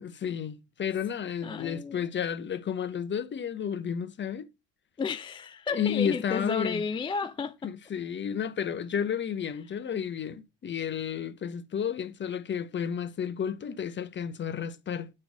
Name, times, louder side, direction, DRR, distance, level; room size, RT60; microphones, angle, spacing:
voice 1, 0.0-4.5 5.7-6.8 7.6-15.1, left 8 dB, 30° left, 0.8 m, -32 dB
voice 2, 1.4-2.1 5.0-7.7, left 5 dB, 15° left, 0.3 m, -32 dB
7.6 x 3.1 x 5.0 m
hypercardioid pair, 75°, 35 cm